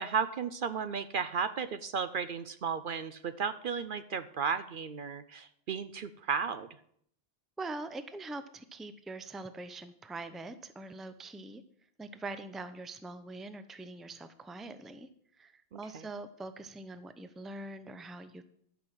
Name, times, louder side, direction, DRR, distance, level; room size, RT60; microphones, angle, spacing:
voice 1, 0.0-6.7 15.7-16.0, right 6 dB, 60° right, 12 dB, 0.7 m, -34 dB
voice 2, 7.6-11.6 12.0-15.1 15.4-18.4, right 2 dB, ahead, 11 dB, 0.5 m, -43 dB
12.0 x 6.2 x 7.5 m, 0.66 s
omnidirectional pair, 1.1 m